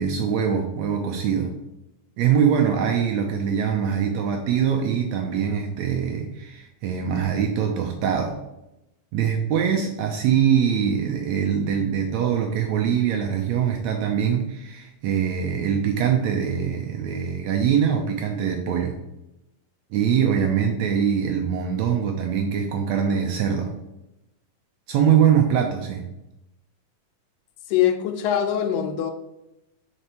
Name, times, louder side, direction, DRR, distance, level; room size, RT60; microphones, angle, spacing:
voice 1, 0.0-1.5 2.2-8.4 9.1-18.9 19.9-23.7 24.9-26.1, right 8 dB, 80° right, 2 dB, 1.6 m, -23 dB
voice 2, 27.7-29.1, left 10 dB, 85° left, 7 dB, 2.3 m, -22 dB
6.7 x 4.5 x 4.3 m, 0.90 s
omnidirectional pair, 3.8 m